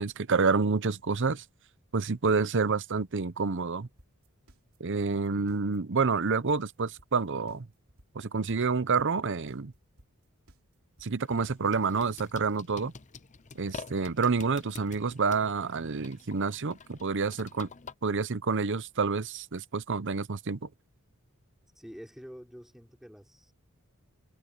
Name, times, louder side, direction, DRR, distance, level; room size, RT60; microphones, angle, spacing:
voice 1, 0.0-1.4 1.9-3.9 4.8-7.7 8.1-9.7 11.0-12.9 13.5-17.7 18.0-20.7, right 4 dB, 55° right, 0.8 m, -28 dB
sound 1, 4.0-12.0, right 1 dB, 75° right, 3.2 m, -59 dB
sound 2, 11.2-17.9, left 4 dB, 35° left, 0.7 m, -48 dB
voice 2, 21.7-23.5, equal, ahead, 5.9 m, -47 dB
head